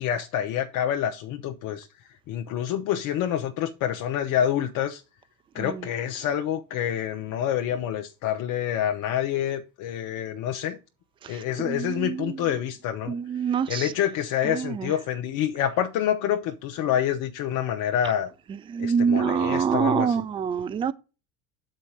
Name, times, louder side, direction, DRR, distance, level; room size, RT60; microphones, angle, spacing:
voice 1, 0.0-1.9 2.3-5.0 5.5-10.8 11.3-13.2 13.7-18.3 18.8-20.1, left 10 dB, 50° left, 0.7 m, -27 dB
voice 2, 5.6-5.9 11.2-12.5 13.1-13.9 14.4-14.9 18.5-20.9, right 7 dB, 15° right, 0.3 m, -26 dB
6.5 x 4.1 x 6.3 m
hypercardioid pair, 75°, 43 cm